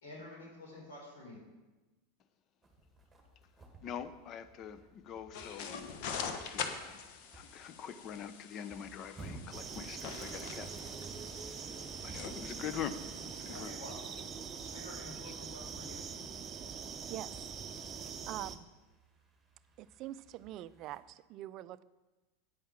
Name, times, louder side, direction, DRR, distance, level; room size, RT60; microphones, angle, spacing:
voice 1, 0.0-1.4 13.5-16.0, left 1 dB, 80° left, -3 dB, 3.9 m, -49 dB
sound 1, 2.6-21.0, right 2 dB, 5° right, 2.0 m, -58 dB
voice 2, 3.8-5.9 6.2-13.7 15.2-15.3, left 8 dB, 40° left, 12 dB, 0.7 m, -45 dB
sound 2, 5.3-13.7, left 6 dB, 60° left, 1.0 m, -44 dB
sound 3, 9.5-18.6, right 6 dB, 25° right, 0.7 m, -43 dB
voice 3, 18.3-18.7 19.8-21.8, right 14 dB, 45° right, 15 dB, 0.4 m, -44 dB
9.5 x 5.6 x 7.4 m, 1.1 s
supercardioid pair, 115°, 0 cm